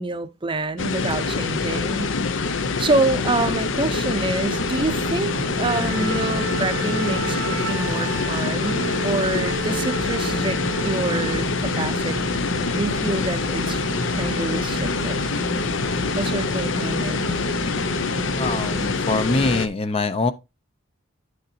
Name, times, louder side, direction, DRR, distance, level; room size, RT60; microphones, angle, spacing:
voice 1, 0.0-2.1 2.8-12.4 12.7-13.9 14.1-15.2 16.1-17.2, right 2 dB, 25° right, 0.6 m, -27 dB
sound 1, 0.8-19.7, left 4 dB, 65° left, 0.7 m, -25 dB
sound 2, 4.5-18.9, right 2 dB, 55° right, 0.8 m, -33 dB
Wind instrument woodwind instrument, 5.6-11.4, right 2 dB, 85° right, 0.8 m, -33 dB
voice 2, 18.4-20.3, left 2 dB, 30° left, 0.5 m, -23 dB
9.8 x 6.5 x 2.7 m
head